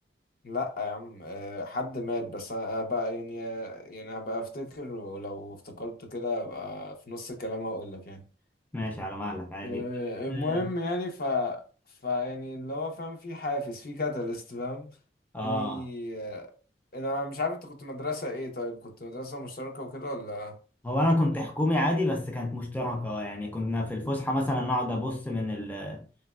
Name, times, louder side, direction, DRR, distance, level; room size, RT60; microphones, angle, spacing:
voice 1, 0.4-8.2 9.6-11.6 12.0-14.9 15.4-16.5 16.9-20.6, left 2 dB, 55° left, 0.6 m, -33 dB
voice 2, 8.7-9.8 10.3-10.7 15.3-15.9 20.8-26.0, left 1 dB, 10° left, 0.4 m, -29 dB
3.2 x 2.8 x 2.2 m
head